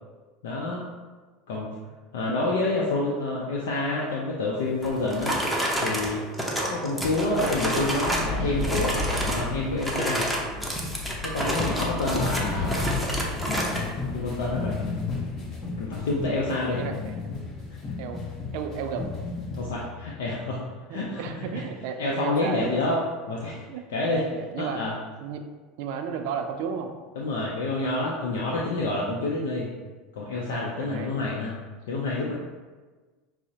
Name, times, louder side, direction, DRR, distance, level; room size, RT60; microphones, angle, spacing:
voice 1, 0.4-0.8 1.5-1.7 2.1-5.4 5.8-6.2 6.7-10.3 11.2-13.0 14.1-14.7 15.8-16.8 19.6-20.6 20.9-21.5 22.0-23.0 23.3-23.6 23.9-24.2 24.6-24.9 27.2-29.7 30.1-31.6 31.9-32.3, left 2 dB, 85° left, -4 dB, 0.5 m, -28 dB
sound 1, 4.8-8.3 8.6-9.5 9.8-13.9, equal, ahead, 0.7 m, -29 dB
Wind, 7.2-14.5, left 3 dB, 65° left, 1.2 m, -34 dB
sound 2, 12.0-19.8, left 4 dB, 40° left, 1.0 m, -33 dB
voice 2, 12.1-12.4 16.8-17.1 18.0-18.2 18.5-19.1 20.9-22.9 23.7-24.8 25.2-25.5 25.8-26.9 28.2-28.7 30.3-31.1, right 6 dB, 70° right, 5 dB, 0.4 m, -34 dB
5.8 x 2.0 x 2.7 m, 1.3 s
supercardioid pair, 100°, 0 cm